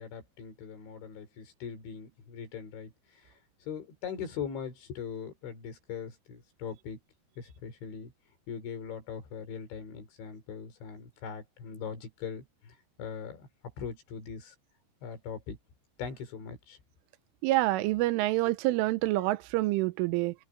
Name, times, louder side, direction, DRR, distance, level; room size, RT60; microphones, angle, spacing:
voice 1, 0.0-2.9 3.2-3.3 3.7-7.0 7.4-8.1 8.5-13.5 13.8-14.6 15.0-15.6 16.0-16.8 18.4-18.5, left 7 dB, 65° left, 6.4 m, -41 dB
voice 2, 17.4-20.3, right 18 dB, 90° right, 3.2 m, -27 dB
open air
omnidirectional pair, 5.7 m